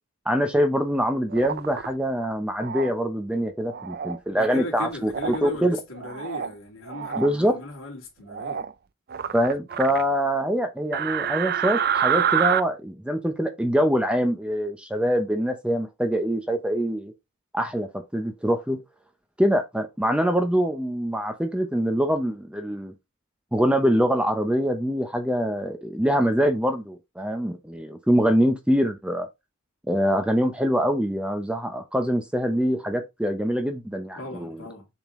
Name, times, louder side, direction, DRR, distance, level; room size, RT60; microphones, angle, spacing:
voice 1, 0.3-5.8 7.2-7.5 9.3-17.1 17.5-18.8 19.4-22.9 23.5-29.3 29.9-34.6, equal, 5° right, 0.6 m, -24 dB
sound 1, 1.3-1.9 2.6-2.9 3.7-4.2 5.1-5.5 5.9-6.5 6.9-7.3 8.3-8.7 9.1-10.0 10.9-12.6, right 8 dB, 45° right, 0.4 m, -27 dB
voice 2, 4.3-8.6 34.1-34.9, left 2 dB, 70° left, 2.6 m, -37 dB
7.2 x 3.7 x 3.6 m
head